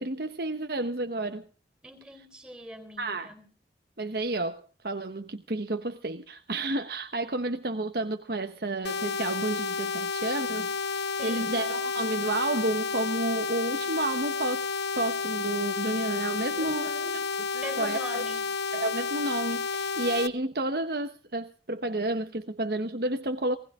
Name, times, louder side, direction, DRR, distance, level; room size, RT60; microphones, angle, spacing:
voice 1, 0.0-1.5 3.0-3.3 4.0-14.7 14.9-16.9 17.8-18.2 18.7-23.6, right 2 dB, 60° right, 1.1 m, -31 dB
voice 2, 1.8-3.4 11.2-11.6 16.6-17.2 17.5-18.4, equal, 5° right, 4.1 m, -42 dB
sound 1, 8.8-20.3, left 5 dB, 70° left, 1.0 m, -31 dB
20.0 x 18.5 x 3.7 m
head